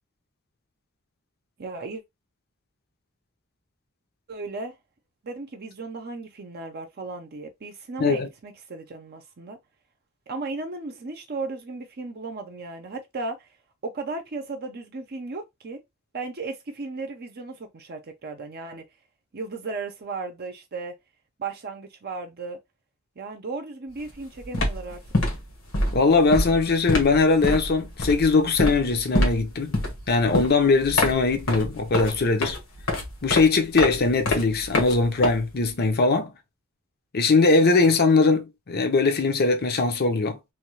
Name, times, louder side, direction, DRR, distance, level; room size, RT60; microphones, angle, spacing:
voice 1, 1.6-2.0 4.3-4.8 5.2-9.6 10.3-13.5 13.8-15.8 16.1-18.8 19.3-20.9 21.4-22.6 23.2-25.0, right 3 dB, 50° right, 0.6 m, -35 dB
sound 1, 23.9-24.2 24.4-35.8, left 1 dB, 70° left, 1.2 m, -27 dB
voice 2, 25.9-29.7 30.1-32.6 33.2-36.3 37.1-40.4, left 3 dB, 50° left, 0.7 m, -21 dB
3.1 x 2.3 x 3.1 m
head